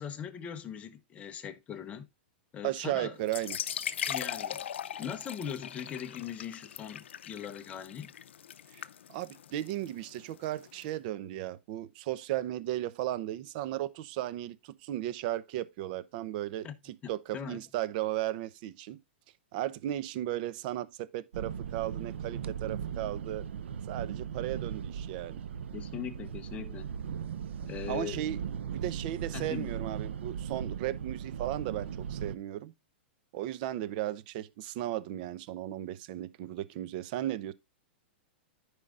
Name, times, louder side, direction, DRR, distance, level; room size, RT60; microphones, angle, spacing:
voice 1, 0.0-2.1 2.5-3.2 4.1-4.6 5.0-8.1 16.6-16.7 17.0-17.6 25.7-26.9 27.6-28.2 29.3-29.7, left 8 dB, 20° left, 1.1 m, -40 dB
voice 2, 2.6-3.6 8.7-8.8 9.1-19.0 19.5-23.5 23.9-25.4 27.9-28.4 28.7-32.7 33.3-37.5, right 13 dB, 50° right, 0.8 m, -35 dB
sound 1, 3.2-10.8, left 9 dB, 85° left, 0.6 m, -39 dB
sound 2, 21.3-32.4, right 8 dB, 85° right, 0.6 m, -38 dB
14.0 x 5.0 x 2.5 m
hypercardioid pair, 140°, 6 cm